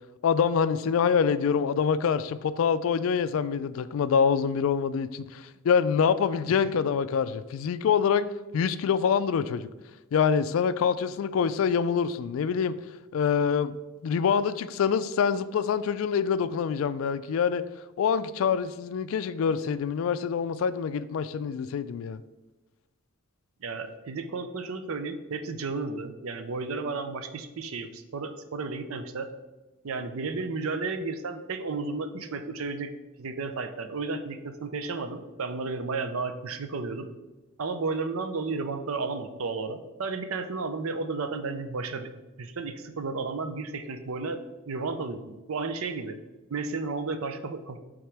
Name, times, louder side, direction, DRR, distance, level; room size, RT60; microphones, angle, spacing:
voice 1, 0.2-8.3 8.5-9.7 10.1-12.8 13.1-13.7 14.0-17.6 18.0-22.2, left 6 dB, 70° left, 14 dB, 0.3 m, -25 dB
voice 2, 23.6-29.3 29.8-32.9 33.2-37.1 37.6-42.1 42.4-44.4 44.7-46.2 46.5-47.8, right 4 dB, 75° right, 8 dB, 0.5 m, -33 dB
7.8 x 3.6 x 3.4 m, 1.1 s
head